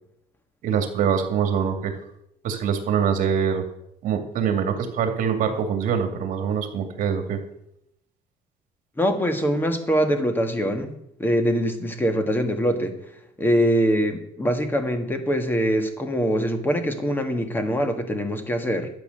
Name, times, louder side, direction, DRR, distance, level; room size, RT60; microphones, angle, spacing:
voice 1, 0.6-1.9 2.4-3.6 4.0-7.4, right 7 dB, 55° right, 6 dB, 2.4 m, -24 dB
voice 2, 9.0-12.9 13.4-18.9, equal, 15° left, 7 dB, 1.6 m, -23 dB
12.5 x 8.5 x 6.7 m, 0.79 s
cardioid pair, 155°, 16 cm